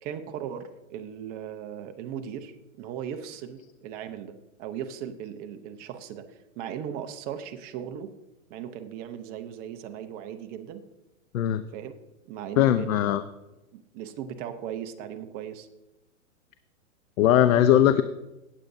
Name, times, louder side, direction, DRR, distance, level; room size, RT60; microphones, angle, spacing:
voice 1, 0.0-8.1 8.5-10.8 11.7-11.9 12.3-13.1 13.7-15.7, right 9 dB, 20° right, 7 dB, 0.6 m, -38 dB
voice 2, 12.6-13.2 17.2-18.0, left 11 dB, 70° left, 11 dB, 0.7 m, -20 dB
18.0 x 7.9 x 2.7 m, 0.99 s
hypercardioid pair, 140°, 41 cm